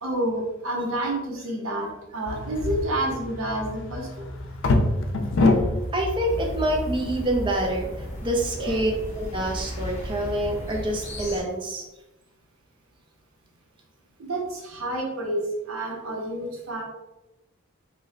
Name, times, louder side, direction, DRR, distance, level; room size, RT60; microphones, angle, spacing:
voice 1, 0.0-4.3 8.6-8.8 14.2-16.8, right 1 dB, 90° right, -1 dB, 0.7 m, -29 dB
sound 1, 2.3-10.9, left 2 dB, 65° left, 0.4 m, -28 dB
voice 2, 5.9-8.9 9.2-11.8, right 1 dB, 25° right, 0 dB, 0.4 m, -26 dB
sound 2, 6.3-11.4, equal, 35° left, 0.8 m, -35 dB
3.0 x 2.1 x 3.7 m, 0.98 s
head